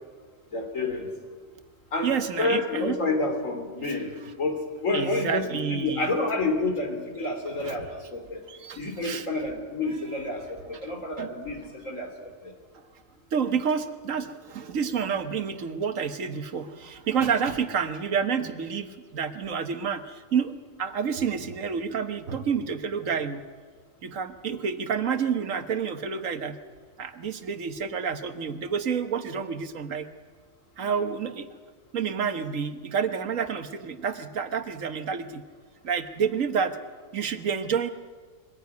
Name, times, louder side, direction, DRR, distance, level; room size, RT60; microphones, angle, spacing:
voice 1, 0.5-1.1 1.9-4.1 4.4-8.4 8.8-12.5 30.8-31.0, left 2 dB, 85° left, 4 dB, 3.6 m, -29 dB
voice 2, 2.0-3.0 4.9-6.1 7.6-7.7 8.5-9.3 11.2-11.3 13.3-20.5 20.8-23.4 24.0-26.6 27.0-30.1 30.8-31.5 31.9-35.4 35.8-36.8 37.1-37.9, right 6 dB, 85° right, 9 dB, 1.6 m, -29 dB
22.5 x 15.5 x 9.5 m, 1.5 s
omnidirectional pair, 1.3 m